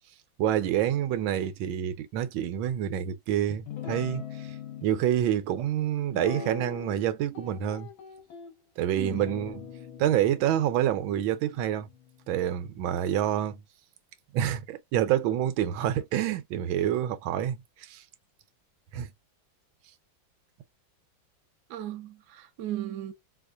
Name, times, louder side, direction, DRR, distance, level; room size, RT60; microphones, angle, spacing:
voice 1, 0.4-4.5 4.8-7.9 8.8-9.7 10.0-11.9 12.3-13.6 14.3-18.0 18.9-19.1, right 11 dB, 85° right, 1.4 m, -27 dB
Guitar, 3.7-4.9 6.1-7.1 7.3-8.5 9.1-12.6, left 7 dB, 85° left, 2.0 m, -42 dB
voice 2, 8.9-9.3 21.7-23.1, right 12 dB, 65° right, 1.1 m, -36 dB
4.3 x 2.5 x 2.4 m
omnidirectional pair, 2.1 m